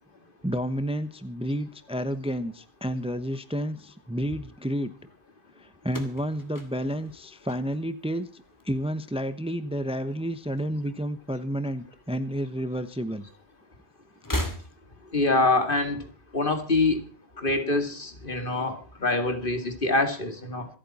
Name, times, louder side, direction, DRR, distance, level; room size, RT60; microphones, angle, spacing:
voice 1, 0.4-4.9 5.6-13.2, equal, 5° right, 12 dB, 0.9 m, -30 dB
sound 1, 5.8-8.2 8.5-9.1 10.1-11.2 11.4-11.5 12.7-12.8 14.1-15.2, left 1 dB, 20° left, 2.4 m, -36 dB
voice 2, 15.1-16.0 16.3-17.0 17.4-20.7, left 2 dB, 55° left, 7 dB, 2.4 m, -25 dB
26.0 x 8.9 x 4.2 m, 0.38 s
omnidirectional pair, 1.1 m